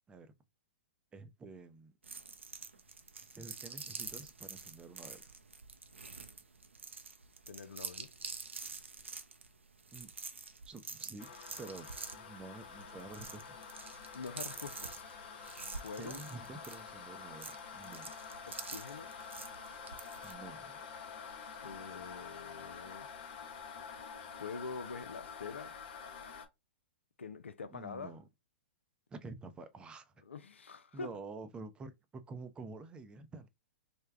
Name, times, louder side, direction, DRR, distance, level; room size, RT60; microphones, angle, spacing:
voice 1, 1.1-1.9 3.3-5.3 9.9-10.1 10.7-11.3 11.6-13.6 16.0-18.1 20.2-20.8 27.7-28.3 29.1-30.2 30.9-33.5, right 3 dB, 15° right, 0.5 m, -49 dB
sound 1, 2.0-20.3, right 4 dB, 90° right, 0.6 m, -47 dB
voice 2, 7.5-8.1 14.1-15.0 15.8-16.2 18.5-19.1 21.6-23.1 24.4-25.8 27.2-28.2 30.2-31.2, left 4 dB, 85° left, 0.4 m, -45 dB
sound 2, 11.2-26.5, left 6 dB, 50° left, 0.7 m, -48 dB
3.3 x 2.1 x 3.4 m
hypercardioid pair, 115°, 6 cm